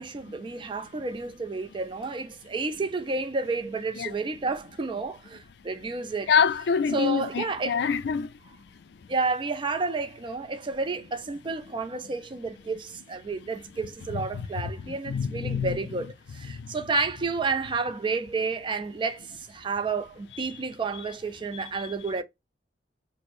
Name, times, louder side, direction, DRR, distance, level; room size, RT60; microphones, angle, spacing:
voice 1, 0.0-6.3 6.9-7.8 9.1-22.2, right 4 dB, 30° right, 0.4 m, -31 dB
voice 2, 6.3-8.3 14.1-14.5 14.9-15.8, left 6 dB, 70° left, 0.4 m, -26 dB
5.9 x 2.0 x 2.5 m
head